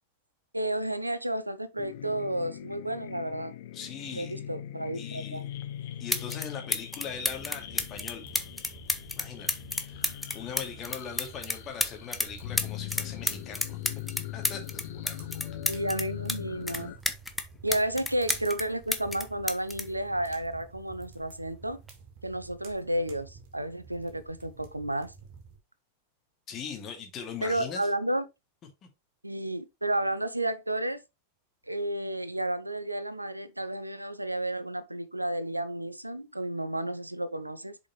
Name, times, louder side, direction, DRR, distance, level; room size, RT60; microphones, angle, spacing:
voice 1, 0.5-3.5 4.1-5.5 15.7-16.9 17.6-21.8 22.2-25.1 27.4-28.2 29.2-31.0 31.7-37.8, right 1 dB, 85° right, 0.6 m, -32 dB
sound 1, 1.8-17.0, left 13 dB, 55° left, 0.8 m, -41 dB
voice 2, 3.7-4.5 4.9-5.5 6.0-8.3 9.2-9.5 9.8-13.8 14.3-15.5 26.5-27.9, left 7 dB, 30° left, 2.3 m, -40 dB
sound 2, 5.6-5.7 6.1-6.5 6.7-12.3 12.6-16.4 16.7-18.6 18.9-20.7 21.7-21.9, left 1 dB, 5° left, 0.9 m, -31 dB
sound 3, 7.0-25.6, right 5 dB, 45° right, 2.3 m, -50 dB
7.0 x 5.3 x 3.1 m
figure-of-eight pair, 90°, 0 cm